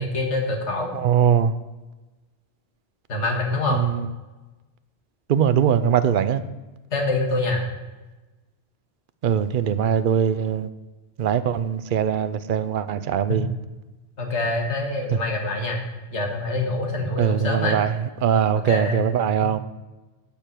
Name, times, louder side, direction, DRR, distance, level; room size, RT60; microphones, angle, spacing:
voice 1, 0.0-0.9 3.1-3.8 6.9-7.6 13.3-13.4 14.2-15.8 16.1-17.8 18.6-19.1 19.4-19.6, left 2 dB, 85° left, 1.9 m, -25 dB
voice 2, 0.9-1.5 3.7-4.1 5.3-6.4 9.2-10.7 11.2-13.5 15.1-15.2 17.2-17.9 18.2-19.6, right 8 dB, 55° right, 0.7 m, -21 dB
11.5 x 6.8 x 4.5 m
omnidirectional pair, 1.2 m